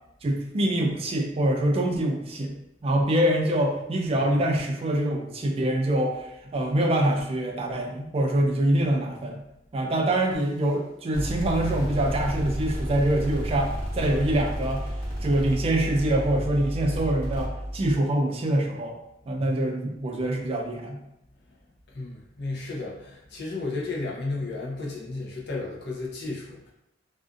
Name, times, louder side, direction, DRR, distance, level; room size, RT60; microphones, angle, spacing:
voice 1, 0.2-2.5 2.8-9.4 9.7-14.9 15.2-18.9 19.3-21.0, right 1 dB, 30° right, 2 dB, 0.3 m, -25 dB
sound 1, 11.1-18.0, equal, 10° left, 0.8 m, -31 dB
voice 2, 21.9-26.7, left 3 dB, 60° left, -1 dB, 0.6 m, -33 dB
2.4 x 2.4 x 2.5 m, 0.85 s
head